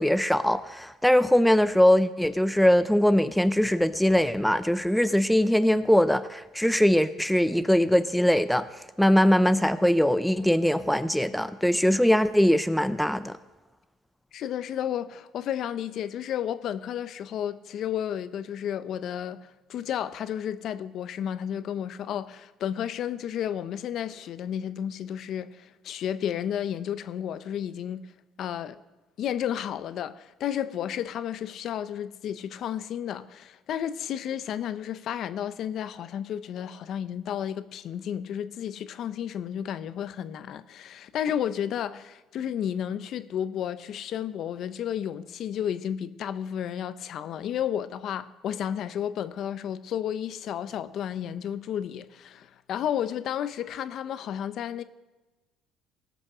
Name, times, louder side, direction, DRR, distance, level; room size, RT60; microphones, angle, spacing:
voice 1, 0.0-8.7 9.0-13.4, equal, ahead, 0.4 m, -21 dB
voice 2, 14.3-28.1 28.4-28.8 29.2-54.8, left 9 dB, 50° left, 0.6 m, -32 dB
17.5 x 6.2 x 6.7 m
cardioid pair, 135°, 0 cm